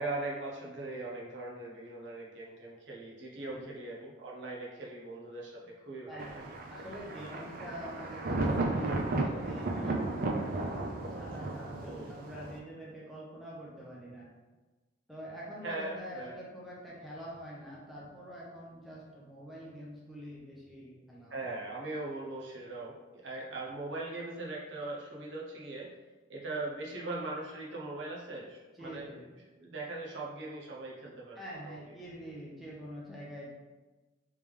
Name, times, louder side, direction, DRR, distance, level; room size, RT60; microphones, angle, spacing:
voice 1, 0.0-6.4 11.8-12.1 15.6-16.4 21.3-25.9 26.3-29.3 29.6-31.8, right 2 dB, 65° right, -3 dB, 0.8 m, -40 dB
voice 2, 6.1-10.8 11.1-14.3 15.1-21.5 28.7-29.2 31.4-33.5, equal, ahead, -6 dB, 0.8 m, -46 dB
Thunder, 6.2-12.6, right 2 dB, 45° right, 0.4 m, -34 dB
3.5 x 3.3 x 3.3 m, 1.2 s
head